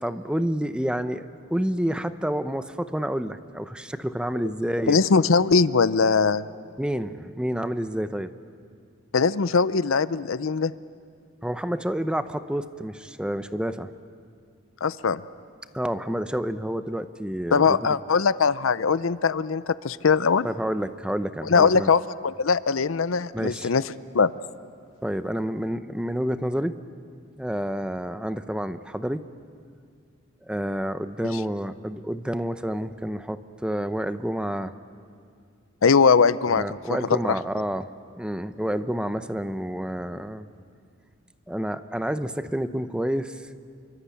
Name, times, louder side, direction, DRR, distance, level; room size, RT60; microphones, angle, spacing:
voice 1, 0.0-5.0 6.8-8.3 11.4-13.9 15.7-17.8 20.4-21.9 23.3-23.7 25.0-26.8 27.4-29.2 30.5-34.7 36.5-37.9 38.1-40.5 41.5-43.5, equal, 5° right, 11 dB, 0.7 m, -29 dB
voice 2, 4.9-6.4 9.1-10.7 14.8-15.2 17.5-20.5 21.5-23.8 24.1-24.3 35.8-36.6 36.9-37.0, left 5 dB, 75° left, 16 dB, 0.6 m, -21 dB
27.5 x 24.0 x 8.5 m, 2.2 s
head